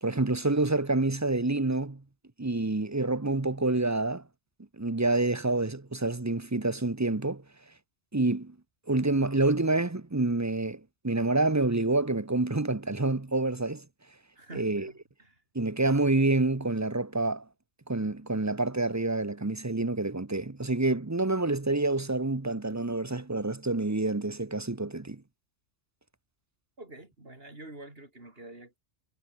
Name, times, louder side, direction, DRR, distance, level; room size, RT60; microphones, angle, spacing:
voice 1, 0.0-2.0 2.4-4.2 4.7-7.4 8.1-8.5 8.9-13.8 14.5-14.9 15.5-17.4 17.9-25.2, right 2 dB, 15° right, 0.9 m, -27 dB
voice 2, 14.3-15.4 26.8-28.8, right 2 dB, 50° right, 4.7 m, -47 dB
omnidirectional pair, 1.2 m